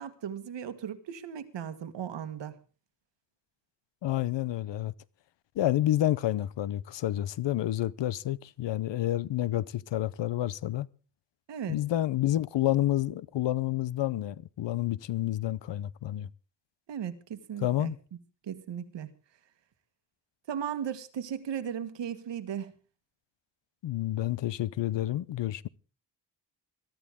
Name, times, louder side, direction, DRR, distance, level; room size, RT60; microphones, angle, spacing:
voice 1, 0.0-2.6 11.5-11.8 16.9-17.9 18.4-19.1 20.5-22.7, right 8 dB, 90° right, 1.7 m, -36 dB
voice 2, 4.0-4.9 5.6-10.9 11.7-16.3 17.6-18.0 23.8-25.7, left 13 dB, 85° left, 0.7 m, -29 dB
22.5 x 13.0 x 3.6 m
wide cardioid pair, 170°, 42 cm